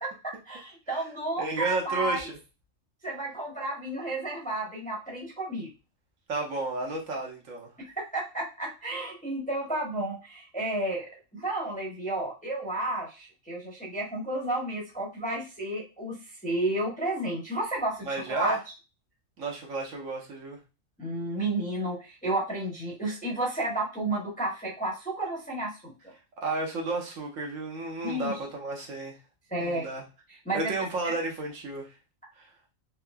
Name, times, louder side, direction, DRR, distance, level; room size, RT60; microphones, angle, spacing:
voice 1, 0.0-2.2 3.0-5.7 8.0-16.2 16.4-18.6 21.0-26.1 28.0-28.3 29.5-29.8 30.5-30.7 31.0-31.1, right 1 dB, 10° left, -2 dB, 0.7 m, -32 dB
voice 2, 1.4-2.4 6.3-7.7 18.0-18.6 19.4-20.6 26.4-29.2 29.6-30.0 30.5-31.9 32.4-32.5, right 3 dB, 75° right, 0 dB, 1.3 m, -32 dB
3.7 x 2.8 x 2.2 m, 0.30 s
omnidirectional pair, 1.4 m